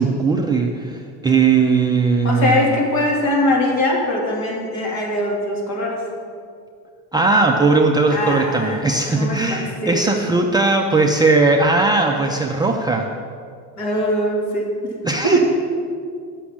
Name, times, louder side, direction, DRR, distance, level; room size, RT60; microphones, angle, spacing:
voice 1, 0.0-2.7 7.1-13.1 15.0-15.4, right 3 dB, 10° right, 0 dB, 0.4 m, -18 dB
voice 2, 2.2-6.0 8.1-8.8 9.2-10.2 13.8-14.9 15.2-15.4, left 1 dB, 50° left, -1 dB, 2.5 m, -21 dB
9.9 x 6.2 x 7.2 m, 2.3 s
cardioid pair, 150°, 37 cm